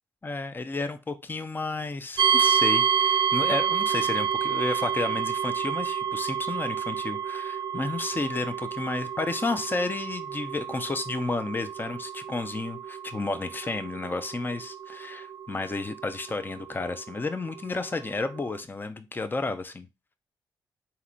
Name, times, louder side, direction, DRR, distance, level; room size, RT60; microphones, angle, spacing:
voice 1, 0.2-19.9, left 3 dB, 25° left, 0.7 m, -32 dB
sound 1, 2.2-17.0, right 8 dB, 80° right, 0.6 m, -28 dB
4.2 x 2.9 x 3.8 m
cardioid pair, 60°, 8 cm